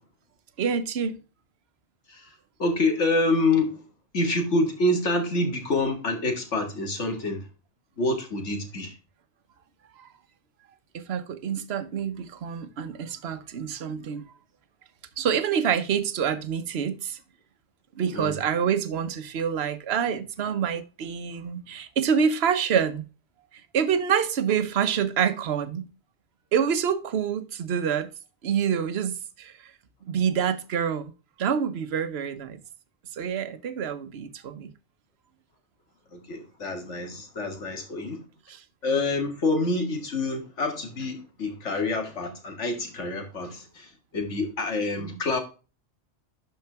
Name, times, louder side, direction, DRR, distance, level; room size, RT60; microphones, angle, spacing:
voice 1, 0.6-1.2 10.0-10.1 10.9-14.2 15.2-17.2 18.0-23.1 23.7-25.9 26.5-28.1 28.4-29.5 30.1-31.1 31.4-32.6 33.2-34.7 38.5-38.6 45.0-45.2, right 7 dB, 60° right, 1.1 m, -27 dB
voice 2, 2.6-3.8 4.1-7.4 8.0-8.9 18.1-18.4 36.1-38.2 38.8-45.4, left 2 dB, 75° left, 2.2 m, -27 dB
11.5 x 4.5 x 3.3 m
omnidirectional pair, 1.2 m